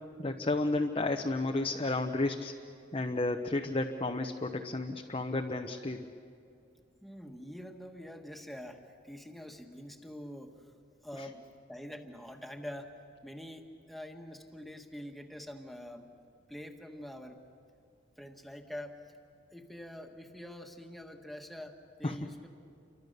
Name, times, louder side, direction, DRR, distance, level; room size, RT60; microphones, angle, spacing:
voice 1, 0.2-2.5 2.9-6.1 11.2-11.3 22.0-22.2, left 2 dB, 30° left, 4 dB, 0.8 m, -32 dB
voice 2, 7.0-10.7 11.0-12.9 13.2-16.1 16.5-17.4 18.2-19.0 19.5-22.5, left 1 dB, ahead, 3 dB, 1.6 m, -45 dB
29.0 x 24.0 x 6.7 m, 2.4 s
head